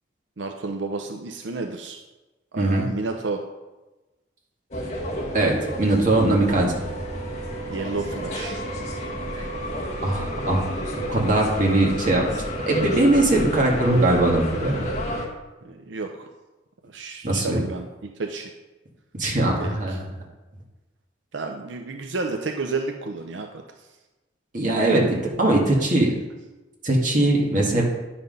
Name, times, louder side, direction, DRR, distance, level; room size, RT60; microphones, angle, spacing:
voice 1, 0.4-2.0 2.5-3.4 7.7-8.6 15.6-16.3 16.8-18.5 19.6-20.0 21.3-23.5 23.8-23.9 26.0-26.1, right 3 dB, 85° right, 4 dB, 0.6 m, -31 dB
sound 1, 4.7-15.3, equal, 40° left, 1.6 m, -30 dB
voice 2, 5.3-6.7 9.3-9.4 10.0-10.6 11.1-12.2 12.7-14.9 17.2-17.6 19.1-19.9 24.5-26.1 26.8-27.8, right 2 dB, 45° right, -2 dB, 2.0 m, -20 dB
9.8 x 5.9 x 5.4 m, 1.1 s
head